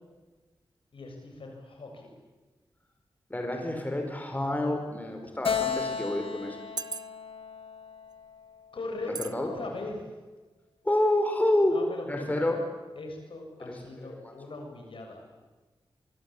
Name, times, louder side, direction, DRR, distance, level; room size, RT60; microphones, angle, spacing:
voice 1, 0.9-2.2 8.7-10.1 11.7-12.6 13.0-15.3, left 2 dB, 70° left, 2 dB, 6.9 m, -40 dB
voice 2, 3.3-6.6 9.2-9.5 10.8-11.8 12.1-12.6 13.6-14.3, left 1 dB, 20° left, 3 dB, 4.9 m, -28 dB
Keyboard (musical), 5.4-8.9, left 6 dB, 85° left, 3.3 m, -34 dB
sound 1, 6.8-7.4 8.1-8.3 9.2-9.4 9.8-9.9, right 4 dB, 45° right, 0.9 m, -37 dB
24.5 x 24.0 x 8.7 m, 1.2 s
wide cardioid pair, 90°, 9 cm